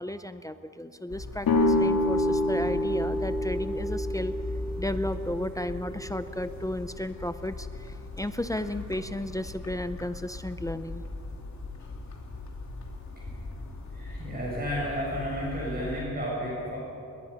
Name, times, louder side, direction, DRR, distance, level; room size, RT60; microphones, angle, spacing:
voice 1, 0.0-4.3 4.8-11.0, left 1 dB, 10° left, 10 dB, 0.5 m, -34 dB
sound 1, 1.1-16.0, left 3 dB, 50° left, 3.0 m, -39 dB
sound 2, 1.4-7.2, left 1 dB, 75° left, 2.4 m, -28 dB
voice 2, 13.9-16.8, equal, 25° right, -5 dB, 7.2 m, -32 dB
29.0 x 20.5 x 5.7 m, 2.7 s
wide cardioid pair, 175°, 35 cm